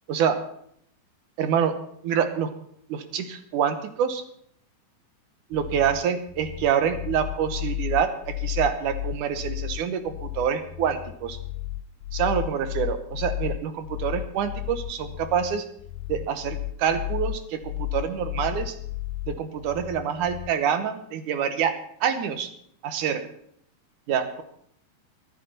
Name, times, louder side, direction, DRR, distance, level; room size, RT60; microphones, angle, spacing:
voice 1, 0.1-0.4 1.4-1.8 2.0-2.5 2.9-4.2 5.5-11.4 12.1-15.6 16.1-18.8 19.3-22.5 22.8-23.3 24.1-24.4, right 8 dB, 70° right, 8 dB, 2.4 m, -26 dB
sound 1, 5.5-20.5, left 16 dB, 75° left, 2.0 m, -33 dB
24.5 x 9.2 x 4.3 m, 0.69 s
omnidirectional pair, 4.1 m